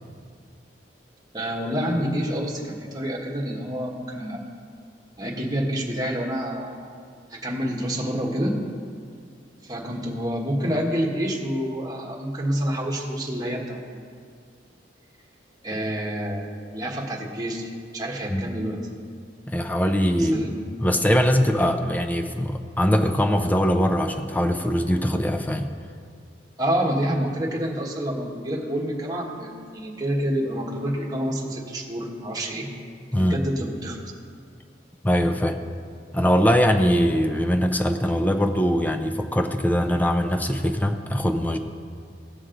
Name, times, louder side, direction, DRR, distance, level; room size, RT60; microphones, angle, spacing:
voice 1, 1.3-4.4 5.2-6.8 7.3-8.6 9.6-14.1 15.6-16.4 16.7-18.8 20.2-20.5 26.6-32.7 33.2-34.0, equal, 20° right, -2 dB, 1.4 m, -28 dB
voice 2, 19.5-20.4 20.8-25.7 33.1-33.4 35.0-35.6 36.1-41.6, equal, 10° left, 6 dB, 0.5 m, -22 dB
17.5 x 6.4 x 3.9 m, 2.2 s
head